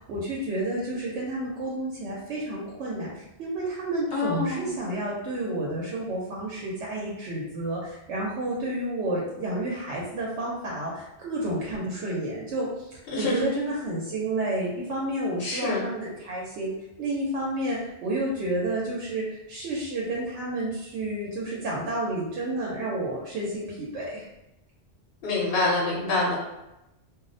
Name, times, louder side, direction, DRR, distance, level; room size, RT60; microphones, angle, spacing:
voice 1, 0.0-12.9 13.2-16.7 17.0-24.3, right 1 dB, 90° right, -4 dB, 0.9 m, -30 dB
voice 2, 4.1-4.7 13.1-13.3 15.4-15.8 25.2-26.4, left 2 dB, 60° left, -4 dB, 1.0 m, -26 dB
2.4 x 2.0 x 2.5 m, 0.91 s
omnidirectional pair, 1.2 m